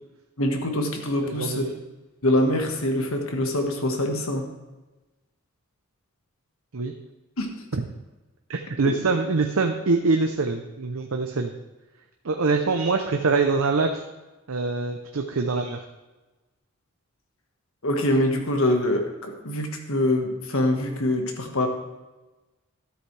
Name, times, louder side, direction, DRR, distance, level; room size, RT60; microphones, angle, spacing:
voice 1, 0.4-1.7 2.2-4.5 7.4-7.6 17.8-21.7, left 1 dB, 75° left, 4 dB, 1.5 m, -24 dB
voice 2, 1.2-1.7 6.7-6.9 7.7-7.8 8.5-11.5 12.2-14.0 14.5-15.9, right 3 dB, 75° right, 4 dB, 0.7 m, -24 dB
13.0 x 8.1 x 3.3 m, 1.1 s
head